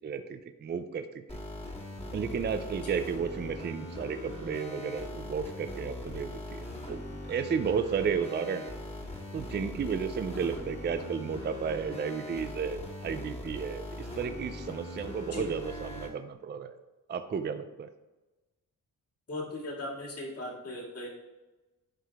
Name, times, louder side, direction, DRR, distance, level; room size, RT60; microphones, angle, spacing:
voice 1, 0.0-1.2 2.1-8.7 9.3-16.7 17.1-17.9, right 6 dB, 30° right, 8 dB, 0.4 m, -33 dB
sound 1, 1.3-16.1, left 1 dB, 15° left, 1.7 m, -41 dB
voice 2, 19.3-21.1, left 1 dB, 40° left, -2 dB, 2.3 m, -38 dB
11.0 x 4.8 x 3.5 m, 1.1 s
wide cardioid pair, 135°, 36 cm